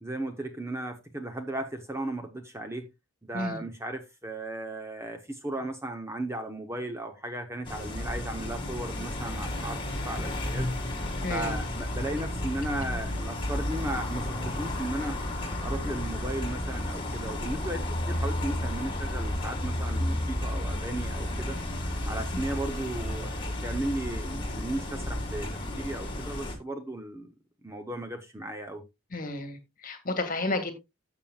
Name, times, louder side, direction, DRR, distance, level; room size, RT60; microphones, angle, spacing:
voice 1, 0.0-2.9 3.2-9.8 10.0-10.7 11.3-15.2 15.6-21.6 22.1-27.3 27.6-28.8, right 1 dB, 10° right, 0.9 m, -35 dB
sound 1, 7.6-26.5, left 1 dB, 25° left, 2.2 m, -32 dB
voice 2, 11.2-11.5 22.3-22.4 29.1-30.7, left 2 dB, 40° left, 1.8 m, -32 dB
13.0 x 7.1 x 2.4 m
head